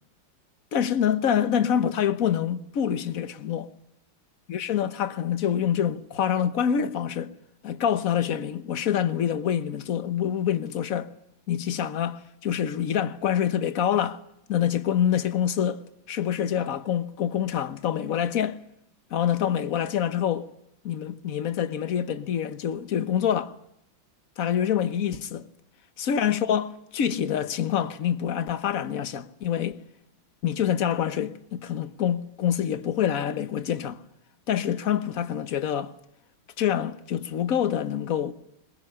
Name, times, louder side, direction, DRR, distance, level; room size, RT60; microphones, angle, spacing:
voice 1, 0.7-3.7 4.5-7.3 7.6-11.1 11.5-14.2 14.5-15.8 16.1-18.6 19.1-20.5 20.8-23.5 24.4-25.5 26.0-29.8 30.4-34.0 34.5-35.9 36.6-38.3, left 9 dB, 50° left, 1.3 m, -26 dB
21.5 x 21.0 x 9.8 m
omnidirectional pair, 2.2 m